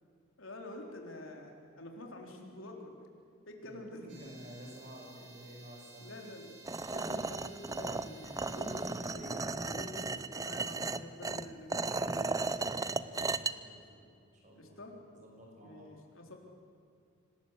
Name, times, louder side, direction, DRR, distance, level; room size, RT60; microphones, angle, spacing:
voice 1, 0.4-3.1 3.5-4.3 6.0-6.6 6.9-12.6 14.5-15.0 15.6-16.3, left 1 dB, 90° left, 2 dB, 3.9 m, -47 dB
voice 2, 3.6-6.4 12.7-14.8 15.1-15.9, equal, 40° right, 0 dB, 6.6 m, -52 dB
sound 1, 4.1-9.2, right 4 dB, 65° right, 5.8 m, -56 dB
sound 2, 6.7-13.5, right 3 dB, 15° right, 0.6 m, -35 dB
26.0 x 19.0 x 8.3 m, 2.4 s
head